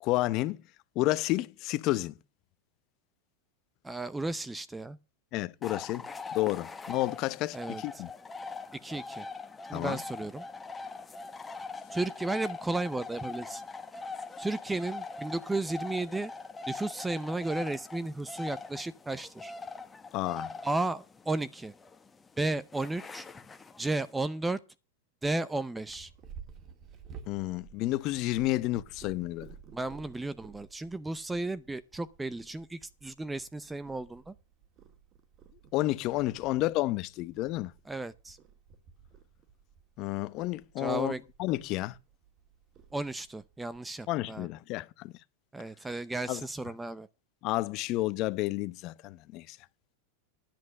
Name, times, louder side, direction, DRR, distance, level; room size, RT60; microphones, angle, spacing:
voice 1, 0.0-0.6 1.0-2.1 5.3-6.1 6.3-8.1 9.7-10.0 20.1-20.5 27.3-29.5 35.7-37.7 40.0-41.1 41.4-42.0 44.1-45.1 46.3-46.4 47.4-49.6, left 17 dB, 45° left, 0.8 m, -30 dB
voice 2, 3.8-5.0 7.5-7.8 8.8-9.3 9.7-10.4 11.9-13.6 14.4-16.3 16.7-19.5 20.6-21.7 22.4-23.3 23.8-24.6 25.2-26.1 29.7-34.3 37.9-38.4 40.8-41.2 42.9-44.5 45.5-47.1, right 2 dB, 10° right, 0.6 m, -34 dB
sound 1, 5.6-24.1, left 4 dB, 15° left, 1.2 m, -42 dB
Purr, 25.9-43.8, right 7 dB, 40° right, 2.0 m, -54 dB
10.5 x 7.4 x 6.4 m
hypercardioid pair, 115°, 0 cm